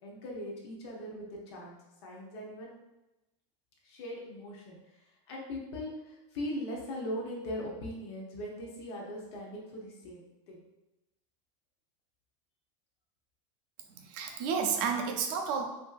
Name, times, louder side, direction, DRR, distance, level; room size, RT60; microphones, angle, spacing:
voice 1, 0.0-1.8 2.0-2.8 3.8-4.8 5.3-10.7, equal, 55° left, -2 dB, 0.7 m, -40 dB
voice 2, 14.0-15.6, right 6 dB, 40° right, 3 dB, 0.4 m, -31 dB
2.9 x 2.5 x 2.4 m, 0.99 s
supercardioid pair, 175°, 17 cm